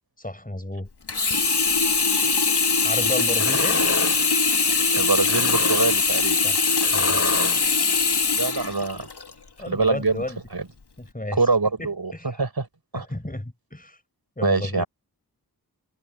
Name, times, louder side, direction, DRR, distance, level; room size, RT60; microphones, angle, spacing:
voice 1, 0.2-0.9 2.8-3.8 6.4-7.3 9.6-10.4 11.0-11.4 11.8-12.4 12.9-14.0 14.4-14.8, left 1 dB, 20° left, 5.3 m, -32 dB
Sink (filling or washing), 1.1-9.3 9.9-10.0, left 4 dB, 85° left, 1.9 m, -22 dB
voice 2, 2.0-2.3 4.9-6.4 8.4-9.1 9.7-10.2 10.5-10.7 11.3-12.1 12.4-12.7 12.9-13.1 14.4-14.9, right 4 dB, 70° right, 6.1 m, -24 dB
sound 1, 3.3-4.3 5.1-6.0 6.7-7.7, left 2 dB, 35° left, 7.2 m, -29 dB
wide cardioid pair, 55°, 39 cm